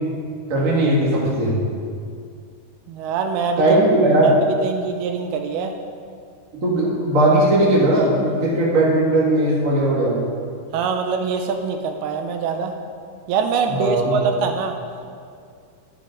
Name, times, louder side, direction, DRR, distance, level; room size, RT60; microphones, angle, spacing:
voice 1, 0.5-1.6 3.6-4.3 6.5-10.2 13.7-14.1, right 1 dB, 35° right, -5 dB, 1.2 m, -18 dB
voice 2, 2.9-3.6 4.2-4.3 4.6-5.7 10.7-12.7 13.3-14.8, right 5 dB, 80° right, 5 dB, 2.5 m, -24 dB
11.0 x 9.3 x 3.9 m, 2.3 s
omnidirectional pair, 4.6 m